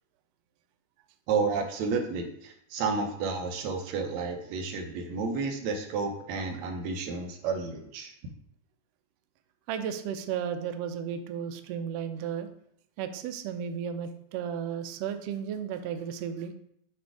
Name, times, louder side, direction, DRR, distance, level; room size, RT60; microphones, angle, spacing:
voice 1, 1.3-8.1, right 4 dB, 70° right, 4 dB, 2.0 m, -31 dB
voice 2, 9.7-12.5 13.0-16.5, right 8 dB, 90° right, 8 dB, 1.4 m, -34 dB
7.8 x 3.4 x 4.7 m, 0.69 s
omnidirectional pair, 3.4 m